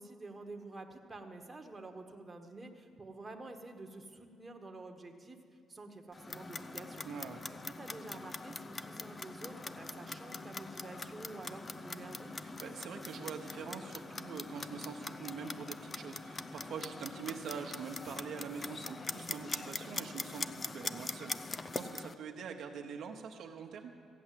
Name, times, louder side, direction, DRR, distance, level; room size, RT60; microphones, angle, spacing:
voice 1, 0.0-5.4 5.7-7.1 7.5-12.3, right 2 dB, 20° right, 3 dB, 1.3 m, -49 dB
Clock, 6.1-22.1, left 3 dB, 30° left, 0.5 m, -43 dB
voice 2, 7.0-7.4 12.4-23.9, right 6 dB, 70° right, 3 dB, 1.0 m, -44 dB
15.5 x 8.6 x 7.6 m, 2.3 s
cardioid pair, 90°, 0 cm